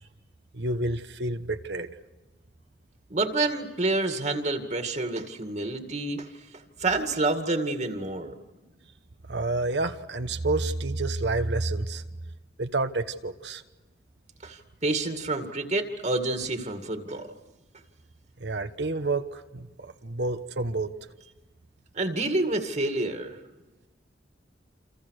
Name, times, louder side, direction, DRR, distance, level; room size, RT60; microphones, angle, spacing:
voice 1, 0.5-1.9 9.3-12.0 12.6-13.6 18.4-20.9, right 2 dB, 70° right, 8 dB, 1.3 m, -29 dB
voice 2, 3.1-6.3 6.8-8.3 14.4-17.3 21.9-23.4, right 2 dB, 40° right, 5 dB, 2.2 m, -28 dB
29.0 x 27.0 x 6.5 m, 1.1 s
head